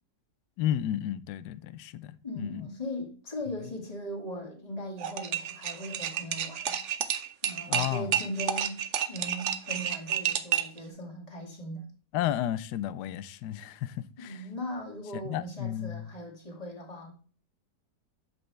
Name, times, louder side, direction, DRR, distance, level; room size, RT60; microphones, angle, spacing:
voice 1, 0.6-2.7 7.7-8.1 12.1-14.4 15.2-16.1, left 11 dB, 75° left, 1.1 m, -32 dB
voice 2, 2.2-6.8 7.4-11.9 14.2-17.1, equal, 20° left, 2.0 m, -39 dB
sound 1, 5.0-10.8, right 9 dB, 60° right, 0.8 m, -30 dB
7.8 x 5.6 x 3.2 m
omnidirectional pair, 1.9 m